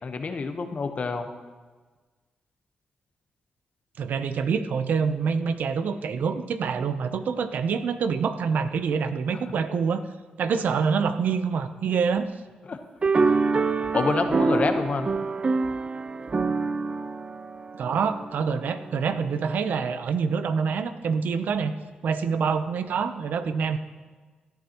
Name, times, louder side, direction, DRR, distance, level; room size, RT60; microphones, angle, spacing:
voice 1, 0.0-1.3 12.7-12.8 13.9-15.1, left 4 dB, 50° left, 7 dB, 1.0 m, -27 dB
voice 2, 4.0-10.0 10.4-12.3 17.7-21.7 22.0-23.8, right 6 dB, 75° right, 10 dB, 0.7 m, -26 dB
sound 1, 13.0-18.6, right 4 dB, 35° right, 0.5 m, -25 dB
17.0 x 10.5 x 3.0 m, 1.4 s
cardioid pair, 65°, 3 cm